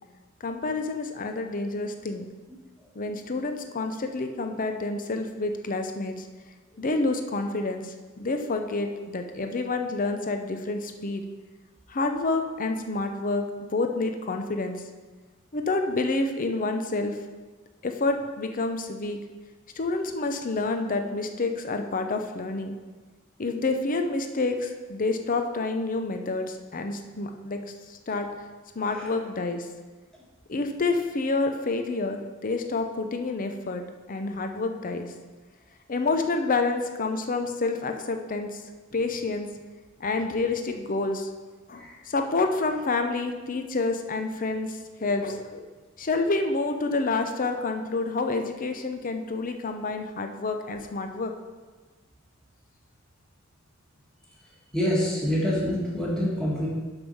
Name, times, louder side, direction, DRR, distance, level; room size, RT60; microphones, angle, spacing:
voice 1, 0.4-2.3 3.0-6.3 6.8-11.3 11.9-14.8 15.5-17.2 17.8-19.2 19.8-22.8 23.4-27.6 27.9-28.3 28.8-29.7 30.5-35.1 35.9-38.6 38.9-39.5 40.0-41.3 41.7-45.7 46.0-51.3, left 3 dB, 40° left, 6 dB, 0.7 m, -28 dB
voice 2, 28.8-29.1 41.7-42.0 54.4-56.7, equal, 5° left, -6 dB, 1.6 m, -27 dB
6.9 x 6.2 x 5.5 m, 1.3 s
head